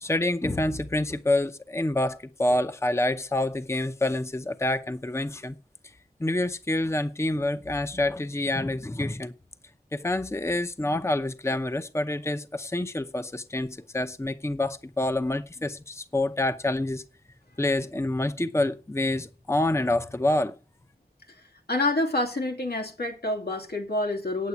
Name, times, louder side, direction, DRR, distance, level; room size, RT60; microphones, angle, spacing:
voice 1, 0.0-5.6 6.2-9.3 9.9-17.0 17.6-20.5, left 1 dB, 15° left, 0.7 m, -27 dB
voice 2, 21.7-24.5, left 2 dB, 90° left, 3.1 m, -27 dB
8.8 x 8.3 x 8.3 m
wide cardioid pair, 65°, 16 cm